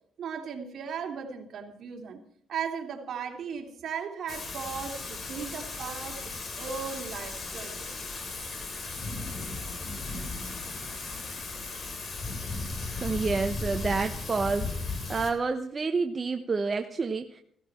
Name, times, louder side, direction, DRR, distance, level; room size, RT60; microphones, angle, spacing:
voice 1, 0.2-2.2 2.5-7.9, right 6 dB, 60° right, 1 dB, 3.2 m, -37 dB
Thunder / Rain, 4.3-15.3, left 3 dB, 45° left, 3.7 m, -36 dB
voice 2, 12.9-17.4, right 4 dB, 30° right, 6 dB, 1.0 m, -29 dB
16.0 x 15.5 x 4.4 m, 0.63 s
cardioid pair, 90°, 0 cm